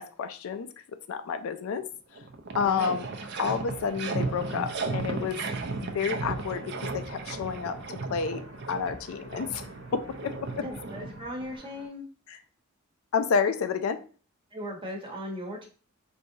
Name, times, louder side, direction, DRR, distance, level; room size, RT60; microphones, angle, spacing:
voice 1, 0.0-1.9 2.6-3.1 3.4-5.4 5.8-7.8 8.1-8.4 8.7-9.6 9.9-10.7 13.1-14.0, left 6 dB, 75° left, 0.4 m, -30 dB
sound 1, 1.8-1.9 2.1-11.6, right 3 dB, 55° right, 0.5 m, -35 dB
voice 2, 2.6-3.0 10.5-12.1 14.5-15.7, equal, 25° right, 0.9 m, -38 dB
sound 2, 2.6-11.9, equal, 80° right, 1.2 m, -50 dB
4.5 x 2.7 x 2.7 m
head